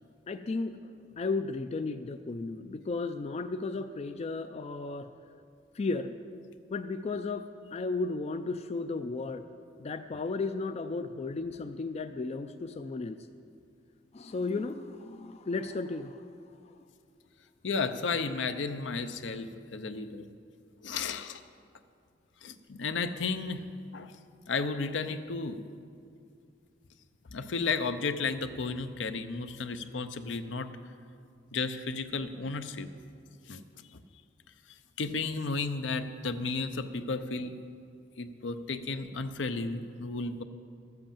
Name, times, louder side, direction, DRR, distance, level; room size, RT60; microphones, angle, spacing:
voice 1, 0.3-5.1 5.7-6.2 6.7-9.4 9.8-13.2 14.1-16.2, left 3 dB, 35° left, 9 dB, 0.4 m, -34 dB
voice 2, 17.6-20.3 20.8-21.4 22.4-23.7 23.9-24.1 24.5-25.6 27.3-30.7 31.5-32.9 33.5-33.6 35.0-37.5 38.2-40.4, left 4 dB, 75° left, 10 dB, 0.6 m, -33 dB
13.0 x 7.8 x 7.2 m, 2.3 s
head